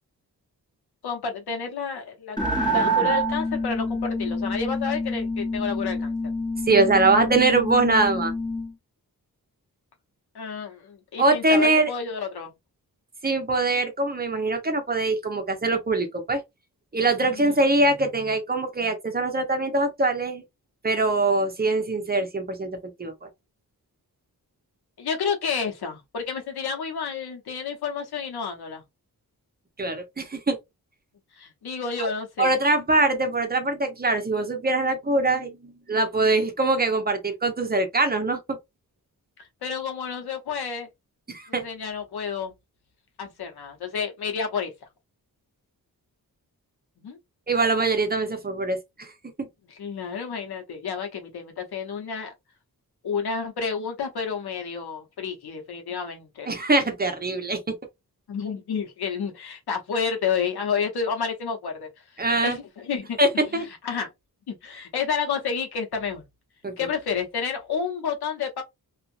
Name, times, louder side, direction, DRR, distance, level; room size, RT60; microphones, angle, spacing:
voice 1, 1.0-6.1 10.3-12.5 17.3-17.6 25.0-28.8 31.4-32.5 39.6-40.9 41.5-42.5 43.2-44.7 47.0-47.2 49.7-52.3 53.0-56.5 58.3-61.9 62.4-63.2 63.5-64.1 64.5-66.2 66.8-68.6, left 6 dB, 85° left, 1.0 m, -30 dB
sound 1, 2.4-8.7, equal, 10° left, 1.2 m, -27 dB
voice 2, 6.7-8.3 11.2-11.9 13.2-16.4 16.9-20.4 20.8-23.3 29.8-30.6 32.0-32.1 32.4-38.6 41.3-41.7 47.5-49.1 49.4-49.5 56.5-57.7 62.2-62.6 63.2-63.7 66.6-66.7, right 2 dB, 25° right, 0.8 m, -23 dB
2.7 x 2.4 x 2.5 m
wide cardioid pair, 90°, 37 cm